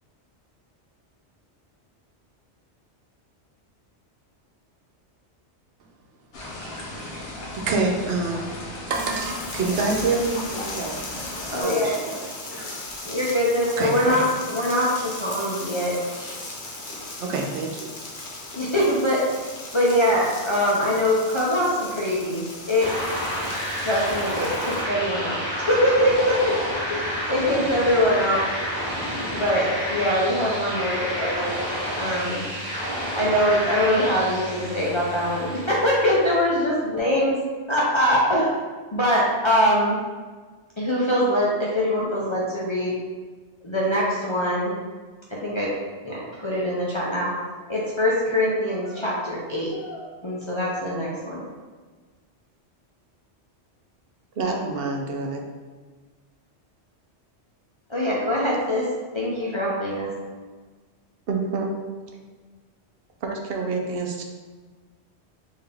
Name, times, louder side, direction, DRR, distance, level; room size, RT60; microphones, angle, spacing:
sound 1, 6.3-11.6, left 1 dB, 60° left, 0.9 m, -36 dB
voice 1, 6.6-6.9 7.5-8.5 8.9-12.6 13.8-14.3 16.2-16.5 17.2-17.9, right 3 dB, 85° right, 1 dB, 0.9 m, -27 dB
sound 2, 8.9-24.8, left 2 dB, 85° left, 1.1 m, -37 dB
voice 2, 11.5-11.9 13.0-15.9 18.6-19.3 19.7-22.9 23.8-25.4 25.7-26.5 26.9-27.0 27.3-28.4 29.3-31.6 32.0-32.4 33.2-37.4 37.7-38.5 38.9-40.0 40.8-42.9 43.6-44.7 45.3-45.7 46.0-47.3 47.7-51.4 57.9-58.9 59.1-60.1, equal, 40° left, -6 dB, 0.4 m, -23 dB
sound 3, 22.8-36.5, equal, 40° right, 1.4 m, -30 dB
voice 3, 54.4-55.4 61.3-61.8 63.2-64.2, right 3 dB, 65° right, 1 dB, 0.7 m, -27 dB
3.8 x 2.7 x 3.3 m, 1.4 s
omnidirectional pair, 1.2 m